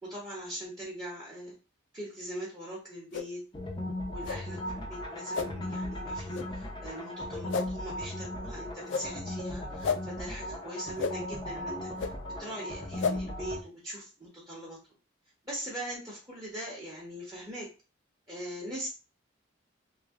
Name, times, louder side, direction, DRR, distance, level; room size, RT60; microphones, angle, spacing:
voice 1, 0.0-1.5 1.9-3.4 4.1-12.1 12.4-14.8 15.4-17.7 18.3-18.9, equal, 20° right, -6 dB, 1.0 m, -41 dB
sound 1, 3.1-3.3 4.2-4.4 5.3-5.5 6.3-6.5 7.5-7.7 8.9-9.1 9.8-10.0 11.0-11.1 12.0-12.1 13.0-13.1, left 5 dB, 60° left, 0.3 m, -30 dB
sound 2, 3.5-13.6, left 1 dB, 25° left, 0.6 m, -37 dB
3.3 x 2.2 x 3.5 m, 0.33 s
head